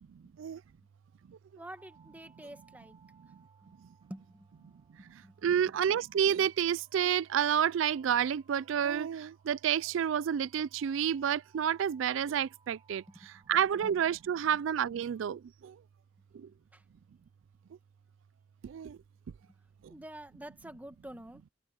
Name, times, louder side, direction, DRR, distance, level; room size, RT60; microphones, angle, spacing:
voice 1, 1.6-3.0 3.6-3.7 4.1-4.7 5.0-5.7 13.1-13.9 16.7-16.8 19.5-19.6 19.9-21.4, right 1 dB, 10° right, 1.3 m, -49 dB
sound 1, 1.6-15.5, right 5 dB, 25° right, 4.5 m, -67 dB
voice 2, 5.0-13.0 13.5-15.8 16.3-16.5 18.6-19.0 19.8-19.9, right 8 dB, 80° right, 0.3 m, -30 dB
head